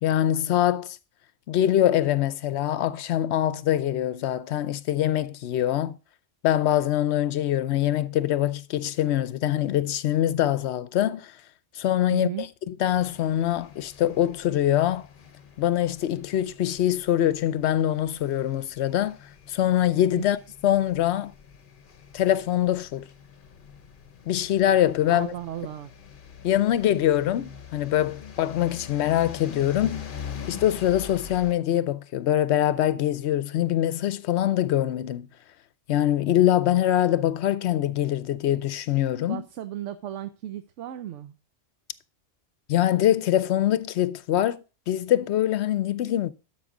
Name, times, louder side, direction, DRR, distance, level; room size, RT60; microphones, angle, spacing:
voice 1, 0.0-1.0 1.5-6.0 6.4-11.3 11.7-12.3 12.7-15.1 15.6-19.2 19.5-20.4 20.6-21.3 22.1-23.1 24.3-25.3 26.4-30.0 30.5-35.3 35.9-39.4 42.7-46.3, left 12 dB, 70° left, 0.9 m, -24 dB
voice 2, 12.1-12.5 20.2-20.3 25.1-25.9 39.3-41.4, right 12 dB, 80° right, 1.0 m, -35 dB
sound 1, 12.9-31.5, left 7 dB, 50° left, 1.0 m, -44 dB
12.5 x 5.4 x 3.7 m
omnidirectional pair, 1.2 m